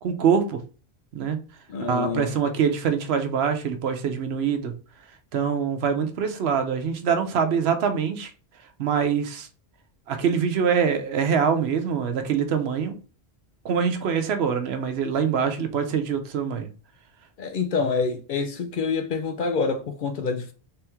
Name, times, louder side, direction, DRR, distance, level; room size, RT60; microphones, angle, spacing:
voice 1, 0.0-0.6 1.1-1.4 1.8-4.7 5.3-8.3 8.8-9.5 10.1-13.0 13.6-16.7, right 6 dB, 80° right, 0.9 m, -24 dB
voice 2, 1.7-2.3 17.4-20.5, left 4 dB, 60° left, 0.6 m, -27 dB
3.4 x 3.0 x 3.4 m
omnidirectional pair, 1.1 m